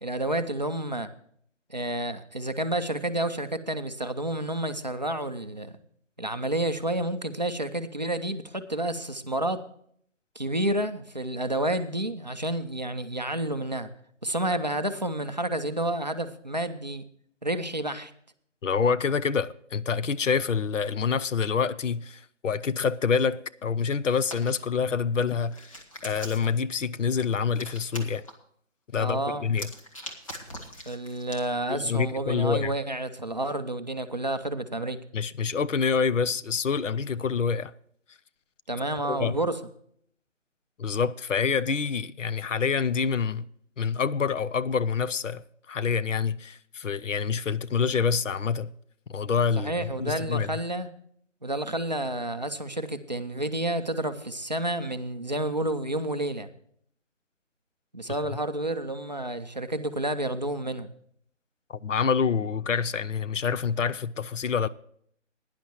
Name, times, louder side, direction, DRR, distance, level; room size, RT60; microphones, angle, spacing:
voice 1, 0.0-1.1 1.7-5.8 6.2-9.6 10.4-13.9 14.2-17.0 17.4-18.1 29.0-29.5 30.9-35.0 38.7-39.6 49.6-50.9 51.4-56.5 57.9-60.9, right 1 dB, 35° right, 0.6 m, -30 dB
voice 2, 18.6-28.2 28.9-29.7 31.7-32.8 35.1-37.7 39.1-39.4 40.8-43.4 43.8-48.7 49.1-50.6 61.7-64.7, left 6 dB, 75° left, 0.7 m, -27 dB
Hands, 24.1-24.6 25.3-26.6 27.5-28.3 29.5-31.5, equal, 25° left, 1.2 m, -41 dB
17.5 x 10.5 x 3.0 m
hypercardioid pair, 175°, 38 cm